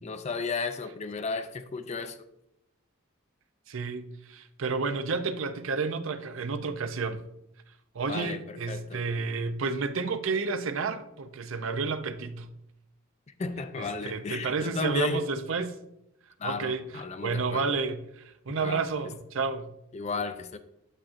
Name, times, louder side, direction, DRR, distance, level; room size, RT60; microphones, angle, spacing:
voice 1, 0.0-2.3 8.1-9.0 13.4-15.2 16.4-17.7 18.6-18.8 19.9-20.6, left 4 dB, 30° left, 0.4 m, -34 dB
voice 2, 3.7-7.2 7.9-12.5 13.8-15.8 16.4-19.7, right 4 dB, 65° right, 0.6 m, -31 dB
8.8 x 7.6 x 2.5 m
head